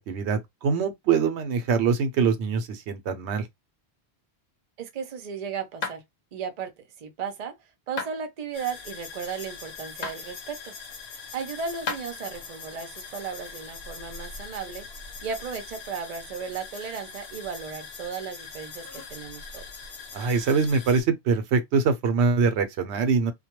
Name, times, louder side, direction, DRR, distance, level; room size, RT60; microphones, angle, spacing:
voice 1, 0.0-3.4 20.1-23.3, right 5 dB, 85° right, 0.9 m, -24 dB
voice 2, 4.8-6.0 6.3-6.7 7.0-7.5 7.9-10.7 11.3-14.9 15.2-19.9, right 6 dB, 45° right, 0.6 m, -35 dB
sound 1, 5.8-6.0 8.0-8.2 10.0-10.2 11.9-12.0, left 5 dB, 50° left, 0.6 m, -31 dB
sound 2, 8.5-21.0, left 5 dB, 80° left, 1.0 m, -42 dB
2.2 x 2.2 x 2.9 m
omnidirectional pair, 1.1 m